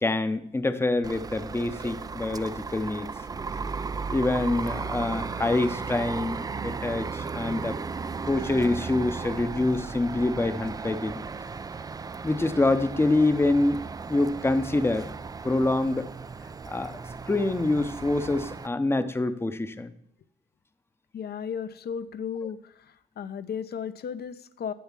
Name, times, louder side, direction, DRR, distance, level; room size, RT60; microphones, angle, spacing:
voice 1, 0.0-3.1 4.1-7.8 8.3-11.2 12.2-13.8 14.1-15.1 15.4-16.1 16.7-17.0 17.3-19.9, left 2 dB, 10° left, 11 dB, 0.7 m, -26 dB
sound 1, 1.0-18.7, right 4 dB, 20° right, 0.3 m, -35 dB
voice 2, 21.1-22.7 23.2-24.7, left 7 dB, 55° left, 13 dB, 0.7 m, -34 dB
7.1 x 7.0 x 7.4 m, 0.75 s
cardioid pair, 90°, 20 cm